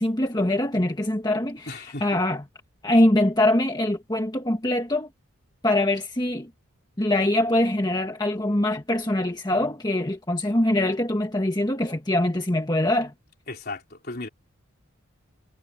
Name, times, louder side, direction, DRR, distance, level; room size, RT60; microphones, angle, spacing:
voice 1, 0.0-2.4 2.8-5.1 5.6-6.5 7.0-13.1, left 1 dB, 20° left, 1.5 m, -23 dB
voice 2, 1.7-2.2 13.5-14.3, left 2 dB, 45° left, 3.8 m, -36 dB
head